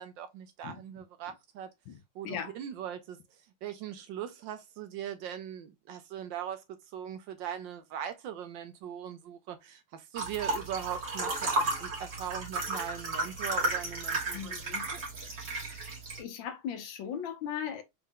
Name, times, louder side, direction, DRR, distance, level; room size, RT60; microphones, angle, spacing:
voice 1, 0.0-1.7 2.1-3.2 3.6-6.6 6.9-14.6 14.9-15.0, right 9 dB, 75° right, 1.2 m, -40 dB
voice 2, 2.2-2.5 14.3-14.9 15.7-17.8, left 8 dB, 75° left, 1.4 m, -38 dB
sound 1, 10.2-16.2, right 2 dB, 45° right, 1.9 m, -33 dB
4.3 x 3.6 x 2.3 m
omnidirectional pair, 2.2 m